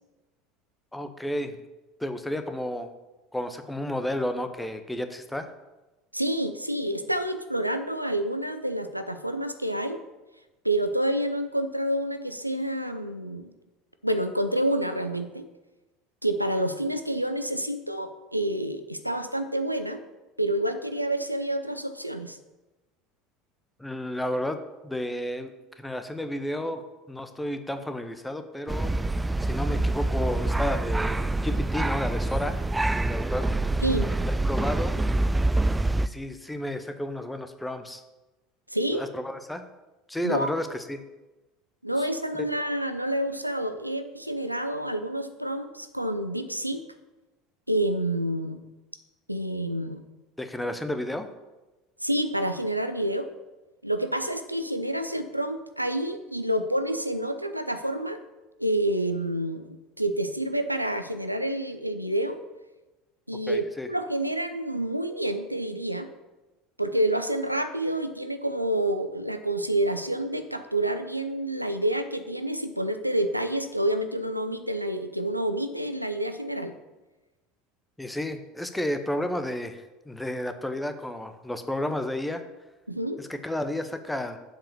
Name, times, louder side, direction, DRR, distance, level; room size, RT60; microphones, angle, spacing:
voice 1, 0.9-1.6 2.0-2.9 3.3-5.5 23.8-24.6 24.8-28.9 29.4-32.6 32.9-33.5 34.2-35.0 36.0-38.0 38.9-39.6 40.1-41.0 42.3-42.4 50.4-51.3 63.5-63.9 78.0-82.4 83.2-84.4, left 1 dB, 5° left, 9 dB, 0.8 m, -32 dB
voice 2, 6.1-10.0 10.6-13.5 14.0-15.5 16.2-20.0 20.4-22.4 33.8-34.1 38.7-39.0 40.2-40.5 41.8-46.8 47.7-48.6 49.3-50.0 52.0-53.3 53.8-58.2 58.6-62.4 63.3-66.1 66.8-76.7 82.9-83.2, right 1 dB, 90° right, 8 dB, 0.5 m, -28 dB
sound 1, 28.7-36.1, right 2 dB, 10° right, 0.3 m, -26 dB
7.5 x 4.9 x 7.1 m, 1.1 s
figure-of-eight pair, 70°, 0 cm